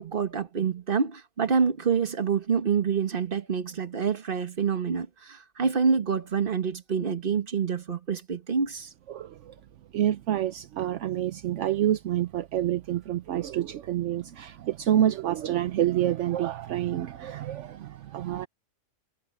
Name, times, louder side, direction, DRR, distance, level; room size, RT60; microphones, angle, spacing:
voice 1, 0.0-8.9, right 6 dB, 45° right, 1.5 m, -27 dB
voice 2, 9.1-9.5 9.9-18.5, right 11 dB, 75° right, 1.0 m, -28 dB
omnidirectional pair, 1.3 m